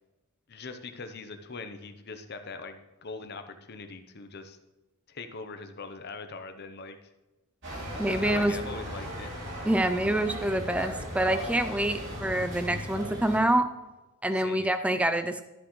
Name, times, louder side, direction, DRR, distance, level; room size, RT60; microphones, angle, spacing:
voice 1, 0.5-4.6 5.1-7.0 8.0-9.3 14.3-14.7, left 4 dB, 45° left, 8 dB, 0.8 m, -41 dB
sound 1, 7.6-13.4, equal, 55° right, 2.9 m, -37 dB
voice 2, 8.0-8.6 9.6-13.7 14.2-15.4, right 1 dB, 5° right, 9 dB, 0.4 m, -26 dB
13.0 x 7.5 x 3.1 m, 1.1 s
head